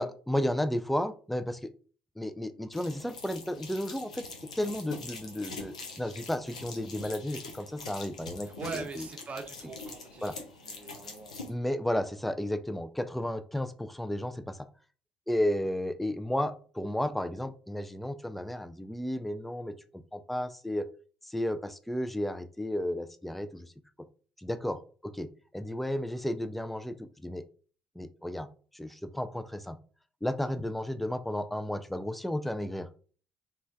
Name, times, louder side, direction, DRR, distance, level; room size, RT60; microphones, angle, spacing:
voice 1, 0.0-1.7 2.2-4.3 4.6-9.1 10.2-10.4 11.5-14.6 15.3-20.9 21.2-23.7 24.4-27.4 28.0-28.5 28.7-29.8 30.2-32.9, left 1 dB, 5° left, 10 dB, 0.3 m, -33 dB
sound 1, 2.7-11.5, left 3 dB, 90° left, 0.4 m, -44 dB
voice 2, 8.4-10.3 10.7-11.4, right 4 dB, 40° right, 6 dB, 0.6 m, -41 dB
3.0 x 2.3 x 2.5 m, 0.40 s
figure-of-eight pair, 50°, 4 cm